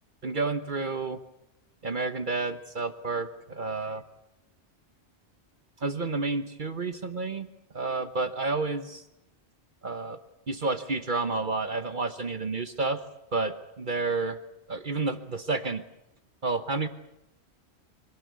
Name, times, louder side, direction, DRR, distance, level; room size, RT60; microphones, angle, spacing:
voice 1, 0.2-1.2 1.8-4.0 5.8-7.5 7.7-9.0 9.8-10.2 10.5-13.0 13.3-14.3 14.7-15.8 16.4-16.9, right 3 dB, 50° right, 10 dB, 1.2 m, -30 dB
25.0 x 19.0 x 8.2 m, 0.86 s
omnidirectional pair, 1.1 m